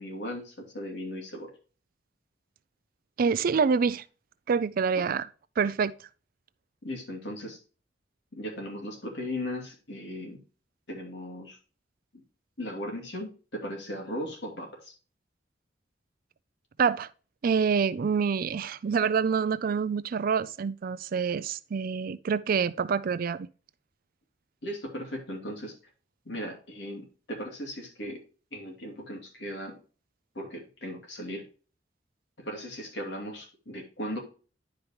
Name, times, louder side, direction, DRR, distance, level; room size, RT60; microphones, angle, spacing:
voice 1, 0.0-1.5 4.9-5.0 6.8-7.6 8.3-10.4 10.9-11.6 12.1-12.2 12.6-14.9 24.6-25.8 26.2-28.2 28.5-29.7 30.3-31.4 32.4-34.2, equal, 65° left, 2.7 m, -37 dB
voice 2, 3.2-4.0 4.5-5.3 5.6-5.9 16.8-17.1 17.4-23.5, right 6 dB, 50° right, 0.4 m, -26 dB
10.0 x 5.3 x 3.0 m
head